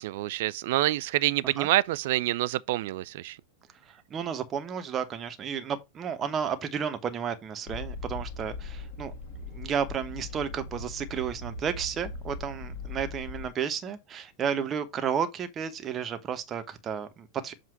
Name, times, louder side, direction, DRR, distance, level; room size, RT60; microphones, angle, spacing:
voice 1, 0.0-3.4, right 16 dB, 50° right, 0.3 m, -27 dB
voice 2, 3.8-9.1 9.5-17.5, right 7 dB, 25° right, 0.9 m, -32 dB
sound 1, 7.7-13.5, left 3 dB, 50° left, 1.6 m, -39 dB
7.6 x 2.6 x 5.6 m
figure-of-eight pair, 90°, 0 cm